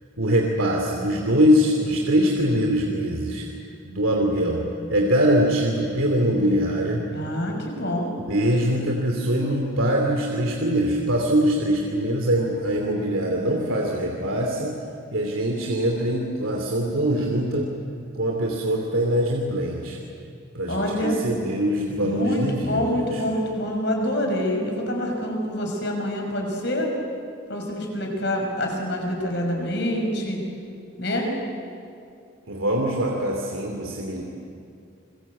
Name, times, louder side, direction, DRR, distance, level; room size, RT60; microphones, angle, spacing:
voice 1, 0.2-3.5 3.9-7.0 8.3-14.8 15.1-17.7 18.2-20.0 20.5-23.2 32.5-34.2, equal, 85° right, 0 dB, 2.8 m, -23 dB
voice 2, 7.1-8.1 20.7-21.2 22.0-26.9 27.5-30.4 31.0-31.3, left 1 dB, 55° left, 1 dB, 6.0 m, -26 dB
29.0 x 22.0 x 8.5 m, 2.5 s
head